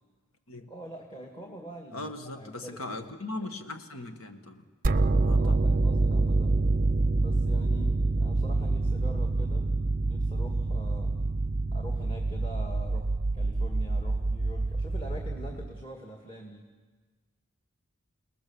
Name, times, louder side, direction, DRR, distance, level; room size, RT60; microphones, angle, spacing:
voice 1, 0.7-3.1 5.3-6.6 7.2-9.7 10.0-11.2 11.7-16.7, equal, 25° left, 1 dB, 1.8 m, -44 dB
voice 2, 1.9-4.7 5.2-5.7, left 2 dB, 75° left, 7 dB, 1.8 m, -39 dB
sound 1, 4.8-15.8, right 3 dB, 40° right, 0.6 m, -26 dB
29.0 x 19.0 x 7.1 m, 1.4 s
head